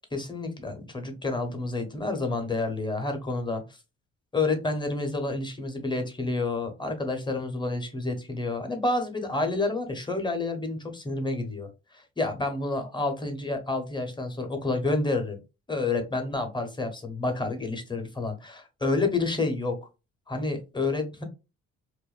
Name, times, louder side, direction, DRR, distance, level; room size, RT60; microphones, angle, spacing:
voice 1, 0.1-3.6 4.3-11.7 11.9-15.4 15.7-19.8 20.3-21.2, left 3 dB, 15° left, 5 dB, 0.6 m, -29 dB
2.4 x 2.2 x 2.3 m, 0.28 s
cardioid pair, 90°, 30 cm